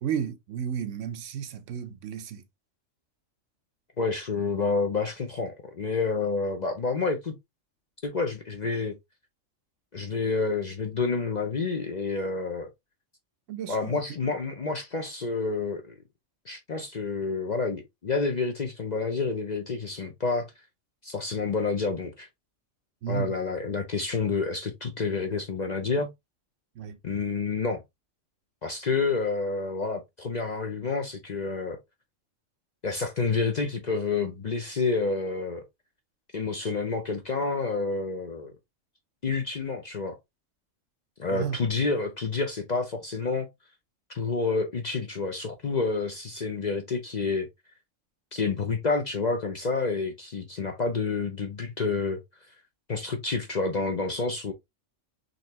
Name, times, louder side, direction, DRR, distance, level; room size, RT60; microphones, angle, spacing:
voice 1, 0.0-2.4 13.5-14.0 23.0-23.3 26.8-27.0 41.3-41.6, right 8 dB, 70° right, 1.0 m, -33 dB
voice 2, 4.0-7.4 8.0-9.0 9.9-12.7 13.7-15.9 16.5-20.5 21.0-22.3 23.1-26.1 27.0-27.8 28.6-31.8 32.8-35.6 36.3-38.5 39.2-40.2 41.2-43.5 44.1-47.5 48.3-52.2 52.9-54.5, left 4 dB, 45° left, 0.6 m, -29 dB
4.0 x 3.2 x 2.8 m
omnidirectional pair, 1.3 m